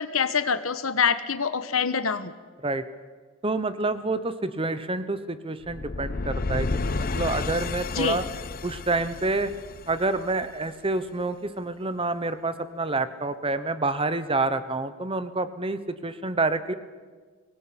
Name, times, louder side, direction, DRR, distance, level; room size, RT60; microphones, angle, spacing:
voice 1, 0.0-2.3 7.9-8.2, left 6 dB, 75° left, 12 dB, 1.3 m, -25 dB
voice 2, 3.4-8.2 8.6-9.5 9.9-16.7, right 3 dB, 25° right, 12 dB, 1.1 m, -28 dB
sound 1, 5.6-10.7, left 3 dB, 45° left, 0.7 m, -31 dB
24.0 x 19.0 x 8.7 m, 1.5 s
head